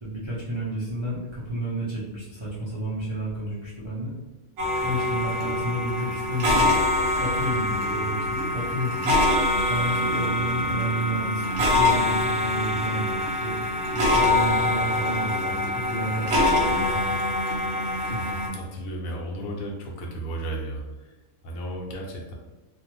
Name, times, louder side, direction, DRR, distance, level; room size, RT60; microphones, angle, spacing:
voice 1, 0.0-4.1 4.8-6.7 7.2-9.2 9.7-13.1 13.4-13.5 13.9-17.2, right 1 dB, 35° right, -9 dB, 0.4 m, -31 dB
sound 1, 4.6-18.5, left 2 dB, 85° right, 1.2 m, -24 dB
voice 2, 18.1-20.8 21.4-22.3, right 1 dB, 75° left, -1 dB, 1.0 m, -33 dB
2.6 x 2.4 x 3.0 m, 1.1 s
omnidirectional pair, 1.6 m